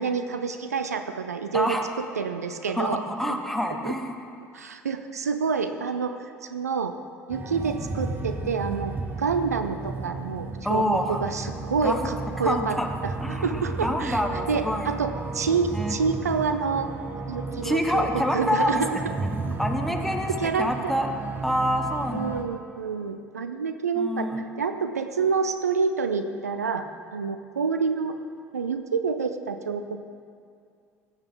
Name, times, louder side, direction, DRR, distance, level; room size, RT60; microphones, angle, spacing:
voice 1, 0.0-3.4 3.8-3.9 4.5-6.9 7.3-8.9 9.2-10.8 11.1-12.8 13.0-16.9 17.3-19.0 20.3-20.9 22.1-26.8 27.1-28.1 28.5-30.0, right 5 dB, 90° right, 8 dB, 0.5 m, -28 dB
voice 2, 1.5-1.9 2.7-4.1 10.6-11.2 11.8-12.1 12.4-12.9 13.2-14.9 15.7-16.0 17.6-19.0 19.6-21.1 21.4-22.4 24.0-24.4, equal, 5° left, 4 dB, 1.1 m, -27 dB
sound 1, 7.3-22.4, right 3 dB, 25° right, 1.1 m, -33 dB
15.0 x 8.0 x 3.9 m, 2.3 s
hypercardioid pair, 65°, 8 cm